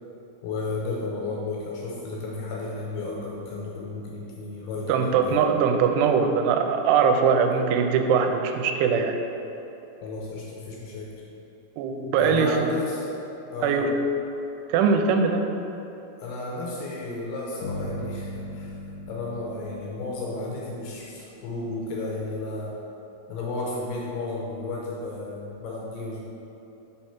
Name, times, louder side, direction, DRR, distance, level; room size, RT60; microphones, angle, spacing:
voice 1, 0.4-5.4 10.0-11.1 12.2-13.1 13.5-13.9 16.2-18.7 19.1-22.8 23.3-26.2, left 2 dB, 80° left, -3 dB, 2.7 m, -33 dB
voice 2, 4.9-9.2 11.8-12.6 13.6-13.9 14.7-15.5, right 6 dB, 85° right, 5 dB, 2.6 m, -21 dB
sound 1, 17.6-21.6, left 1 dB, 60° left, 3.0 m, -38 dB
6.1 x 4.4 x 5.7 m, 3.0 s
omnidirectional pair, 4.8 m